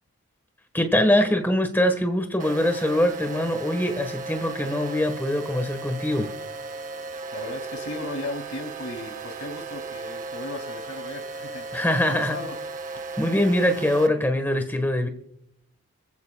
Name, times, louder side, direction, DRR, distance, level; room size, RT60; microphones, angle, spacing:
voice 1, 0.7-6.3 11.7-12.4 13.2-15.1, left 1 dB, 10° left, 1.3 m, -23 dB
sound 1, 2.4-14.1, right 3 dB, 35° right, 0.7 m, -36 dB
voice 2, 7.3-12.6, left 2 dB, 80° left, 2.5 m, -36 dB
28.0 x 15.0 x 2.3 m
head